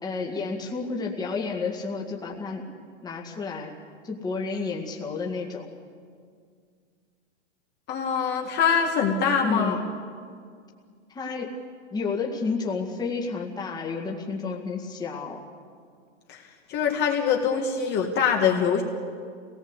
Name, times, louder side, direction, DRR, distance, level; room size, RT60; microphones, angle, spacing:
voice 1, 0.0-2.7 3.0-3.7 4.0-5.7 9.4-9.8 11.1-11.6 11.9-15.4, left 4 dB, 10° left, 0 dB, 2.0 m, -31 dB
voice 2, 7.9-9.8 16.3-16.4 16.7-18.8, left 6 dB, 30° left, 1 dB, 1.8 m, -23 dB
25.5 x 18.5 x 8.2 m, 2.1 s
supercardioid pair, 150°, 35 cm